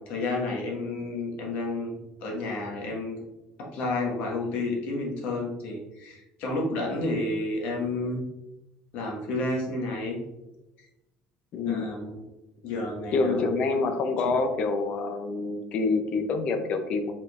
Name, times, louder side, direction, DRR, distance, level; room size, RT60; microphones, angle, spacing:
voice 1, 0.1-3.2 3.6-8.2 8.9-10.2 11.7-12.2 12.6-13.5 14.2-14.4, left 2 dB, 65° left, -1 dB, 1.3 m, -31 dB
voice 2, 11.5-11.9 13.1-17.1, left 3 dB, 45° left, 7 dB, 0.5 m, -26 dB
4.6 x 3.7 x 2.4 m, 0.96 s
cardioid pair, 160°, 3 cm